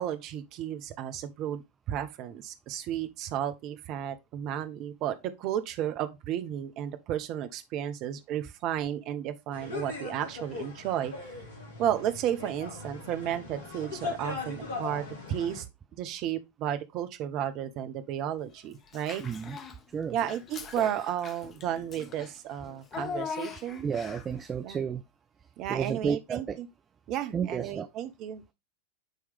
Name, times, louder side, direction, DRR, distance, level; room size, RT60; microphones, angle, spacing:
voice 1, 0.0-1.6 1.9-11.1 11.8-15.7 16.0-19.2 20.1-23.9 24.6-24.8 25.6-26.7 27.1-28.5, right 10 dB, 40° right, 0.8 m, -33 dB
sound 1, 9.5-15.6, left 4 dB, 60° left, 1.8 m, -39 dB
Child speech kid speaking / Bathtub (filling or washing), 18.9-19.8 20.2-24.4, left 6 dB, 25° left, 0.7 m, -41 dB
voice 2, 19.2-19.6 19.9-20.2 23.8-25.0 25.7-26.6 27.3-27.9, right 7 dB, 20° right, 0.4 m, -32 dB
9.1 x 3.2 x 3.5 m
figure-of-eight pair, 90°, 0 cm